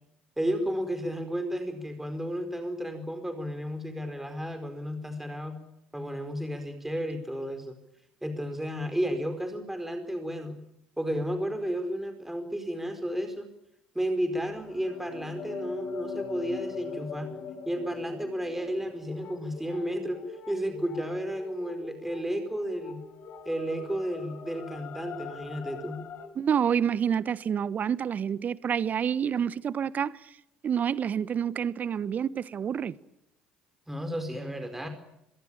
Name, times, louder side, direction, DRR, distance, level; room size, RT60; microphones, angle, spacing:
voice 1, 0.4-5.6 5.9-7.8 8.2-10.6 11.0-13.5 13.9-17.3 17.7-20.2 20.5-23.0 23.4-26.0 33.9-34.9, equal, 5° right, 4.8 m, -32 dB
sound 1, 14.4-26.3, left 5 dB, 55° left, 4.3 m, -42 dB
voice 2, 26.4-30.1 30.6-33.0, right 8 dB, 45° right, 1.2 m, -28 dB
25.0 x 22.5 x 8.8 m
hypercardioid pair, 65°, 4 cm